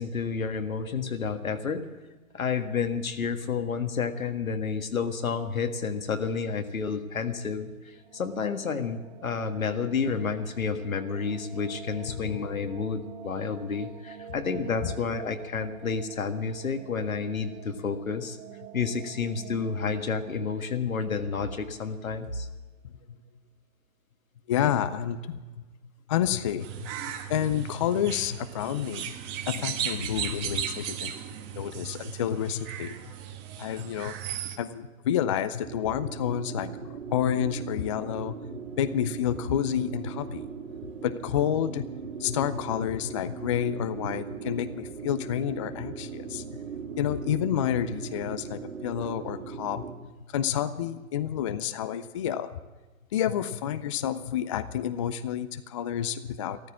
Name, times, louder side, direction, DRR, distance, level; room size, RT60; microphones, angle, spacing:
voice 1, 0.0-1.8 2.3-18.4 18.7-22.5, left 5 dB, 80° left, 7 dB, 1.7 m, -30 dB
sound 1, 7.8-22.7, right 8 dB, 50° right, 1.4 m, -47 dB
voice 2, 12.1-12.4 24.5-25.6 26.1-26.9 27.3-29.1 29.5-31.1 31.5-32.9 33.6-34.1 34.6-38.4 38.8-40.5 41.0-41.9 42.2-46.4 47.0-49.9 50.3-52.6 53.1-56.6, left 9 dB, 25° left, 12 dB, 0.4 m, -29 dB
sound 2, 26.6-34.6, right 9 dB, 25° right, 1.4 m, -36 dB
sound 3, 35.6-49.9, right 6 dB, 75° right, 2.1 m, -39 dB
14.0 x 14.0 x 7.3 m, 1.2 s
hypercardioid pair, 125°, 41 cm